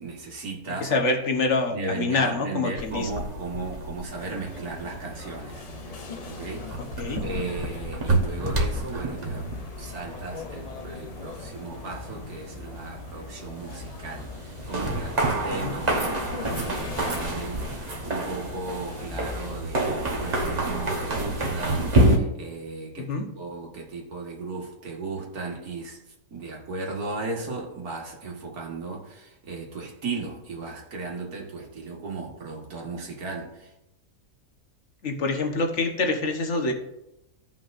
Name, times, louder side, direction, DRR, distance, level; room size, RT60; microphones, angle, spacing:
voice 1, 0.0-0.9 1.7-6.7 7.2-16.3 16.6-26.0 26.3-33.7, right 3 dB, 85° right, -1 dB, 2.1 m, -36 dB
voice 2, 0.8-3.1 7.0-7.2 15.6-15.7 23.1-23.2 35.0-36.7, left 3 dB, 55° left, 3 dB, 1.4 m, -26 dB
sound 1, 2.8-22.2, right 1 dB, 30° right, 1.0 m, -29 dB
sound 2, 4.2-19.6, left 5 dB, 80° left, 0.3 m, -41 dB
16.0 x 5.4 x 2.6 m, 0.90 s
omnidirectional pair, 1.5 m